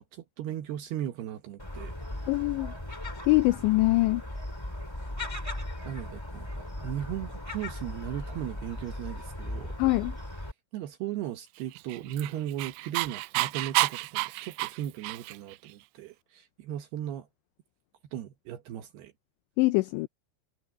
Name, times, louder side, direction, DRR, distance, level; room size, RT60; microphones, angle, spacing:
voice 1, 0.0-1.9 5.8-9.8 10.7-17.3 18.1-19.1, right 11 dB, 70° right, 2.6 m, -37 dB
Gull seagull, 1.6-10.5, left 1 dB, 5° left, 2.6 m, -38 dB
voice 2, 2.3-2.7 3.3-4.2 9.8-10.2 19.6-20.1, left 22 dB, 85° left, 2.5 m, -23 dB
Dog, 11.7-15.6, right 22 dB, 85° right, 2.6 m, -30 dB
omnidirectional pair, 5.8 m